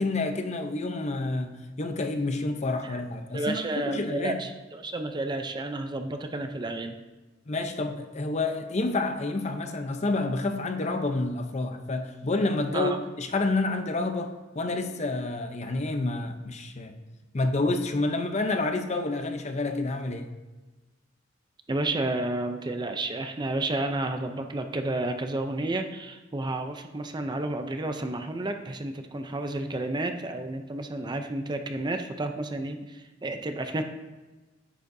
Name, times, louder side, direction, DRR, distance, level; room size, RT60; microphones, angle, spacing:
voice 1, 0.0-4.4 7.5-17.0 17.3-20.3, left 2 dB, 35° left, 6 dB, 0.7 m, -29 dB
voice 2, 3.3-6.9 12.7-13.0 21.7-33.8, right 2 dB, 25° right, 6 dB, 0.5 m, -31 dB
9.9 x 9.2 x 2.7 m, 1.2 s
head